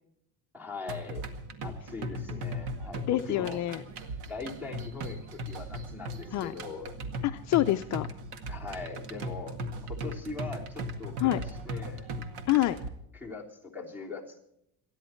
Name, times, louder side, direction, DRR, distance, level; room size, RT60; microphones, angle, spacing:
voice 1, 0.5-1.2 1.6-3.6 4.2-5.2 5.5-6.9 8.5-12.1 13.1-14.4, left 4 dB, 5° right, 3 dB, 3.3 m, -41 dB
sound 1, 0.9-12.9, right 1 dB, 75° right, 1.9 m, -38 dB
voice 2, 3.1-3.8 6.3-6.5 7.2-8.1 11.2-11.4 12.5-12.8, left 15 dB, 45° left, 8 dB, 0.6 m, -26 dB
27.5 x 10.5 x 4.5 m, 0.77 s
cardioid pair, 160°, 38 cm